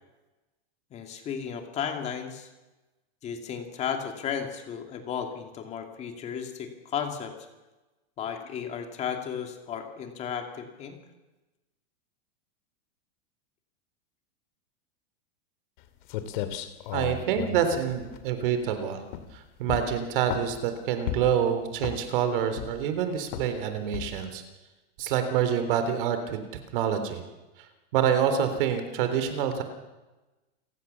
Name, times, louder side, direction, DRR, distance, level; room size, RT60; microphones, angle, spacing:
voice 1, 0.9-2.5 3.2-7.3 8.2-11.0, left 7 dB, 20° left, 5 dB, 2.6 m, -34 dB
sound 1, 15.8-15.9 16.1-18.7 19.1-19.4 19.7-20.6 21.1-21.4 21.8-22.2 22.6-22.9 23.3-23.6 23.9-24.3, left 12 dB, 50° left, 2.4 m, -34 dB
voice 2, 16.9-19.0 19.3-24.4 25.0-26.4 26.7-27.2 27.6-27.7 27.9-29.6, right 8 dB, 55° right, 8 dB, 3.6 m, -27 dB
28.5 x 18.0 x 7.2 m, 1.1 s
supercardioid pair, 175°, 32 cm